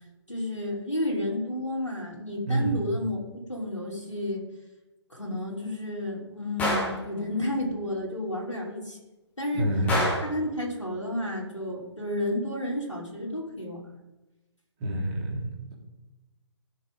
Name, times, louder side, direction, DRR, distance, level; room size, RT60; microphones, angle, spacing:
voice 1, 0.3-4.4 5.1-9.0 9.4-9.7 10.2-13.9, left 1 dB, 90° left, -4 dB, 3.6 m, -31 dB
voice 2, 2.4-2.8 9.5-9.9 14.8-15.7, right 1 dB, 25° right, -3 dB, 3.2 m, -28 dB
Gunshot gunfire, 6.6-7.0 9.9-10.4, equal, 10° left, 1.9 m, -26 dB
17.0 x 6.7 x 3.9 m, 1.1 s
figure-of-eight pair, 135°, 15 cm